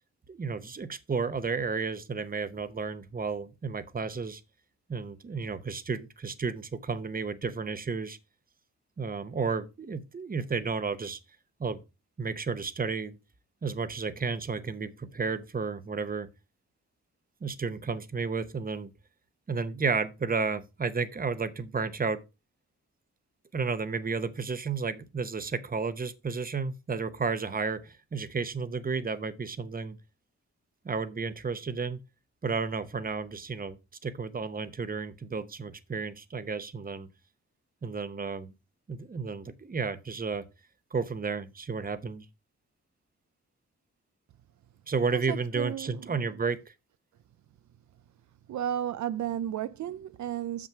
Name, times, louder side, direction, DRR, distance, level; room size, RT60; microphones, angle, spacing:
voice 1, 0.3-4.4 4.9-8.2 9.0-11.2 11.6-11.8 12.2-13.2 13.6-16.3 17.4-18.9 19.5-22.2 23.5-30.0 30.8-32.0 32.4-33.8 34.0-37.1 37.8-38.5 38.9-40.5 40.9-42.2 44.9-46.7, right 4 dB, 30° right, 0.8 m, -32 dB
voice 2, 45.1-46.3 48.5-50.7, right 10 dB, 75° right, 0.4 m, -33 dB
7.2 x 6.0 x 4.4 m
wide cardioid pair, 115°, 30 cm